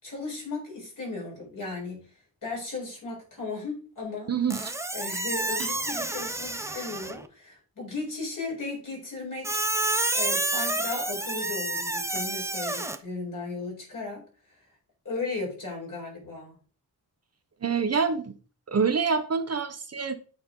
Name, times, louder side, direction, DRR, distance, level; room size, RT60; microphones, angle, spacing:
voice 1, 0.0-2.1 2.4-4.3 4.9-9.6 10.1-14.7 15.0-16.6, left 3 dB, 55° left, -2 dB, 4.7 m, -36 dB
voice 2, 4.3-4.7 5.6-5.7 17.6-18.3 18.7-20.2, right 5 dB, 40° right, 8 dB, 0.8 m, -26 dB
Squeak, 4.5-7.3 9.4-13.0, right 2 dB, 10° right, 0.6 m, -29 dB
8.2 x 5.3 x 3.8 m, 0.38 s
wide cardioid pair, 110°, 37 cm